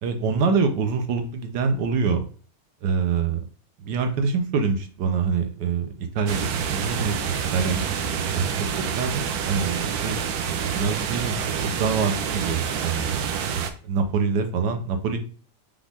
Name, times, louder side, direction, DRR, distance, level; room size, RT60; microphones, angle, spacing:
voice 1, 0.0-2.2 2.8-3.4 3.8-7.9 8.2-10.2 10.7-13.1 13.9-15.2, right 5 dB, 90° right, 6 dB, 1.4 m, -25 dB
sound 1, 6.3-13.7, right 7 dB, 70° right, 1.1 m, -27 dB
5.4 x 2.5 x 3.5 m, 0.40 s
omnidirectional pair, 1.8 m